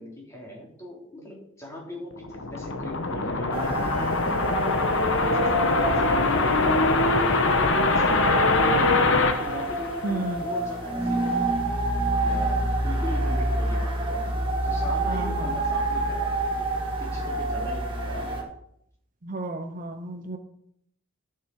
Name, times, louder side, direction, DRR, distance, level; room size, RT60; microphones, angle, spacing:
voice 1, 0.0-8.9 9.4-11.8 12.2-14.3 14.6-16.7 17.0-18.5, left 1 dB, 15° left, -3 dB, 3.3 m, -40 dB
sound 1, 2.1-10.5, left 3 dB, 60° left, 1.2 m, -23 dB
sound 2, 3.5-18.4, right 2 dB, 25° right, 2.3 m, -28 dB
voice 2, 10.0-10.4 15.1-15.6 19.2-20.4, right 2 dB, 40° right, 6 dB, 0.7 m, -32 dB
14.0 x 6.6 x 4.8 m, 0.71 s
head